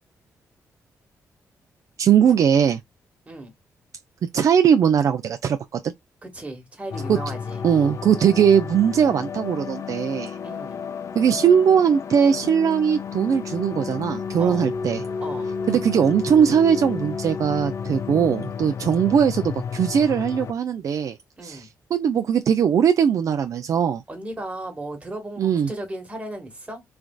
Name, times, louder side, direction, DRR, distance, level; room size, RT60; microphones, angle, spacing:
voice 1, 2.0-2.8 4.3-5.9 7.1-7.2 7.6-10.4 11.1-15.0 15.7-21.2 21.4-24.0 25.4-25.7, right 8 dB, 60° right, 0.3 m, -20 dB
voice 2, 6.2-7.6 10.4-10.8 14.4-14.7 15.2-15.5 21.4-21.7 24.1-26.8, right 1 dB, 20° right, 1.3 m, -35 dB
sound 1, 6.9-20.5, left 6 dB, 50° left, 0.4 m, -32 dB
3.3 x 2.4 x 2.2 m
cardioid pair, 75°, 6 cm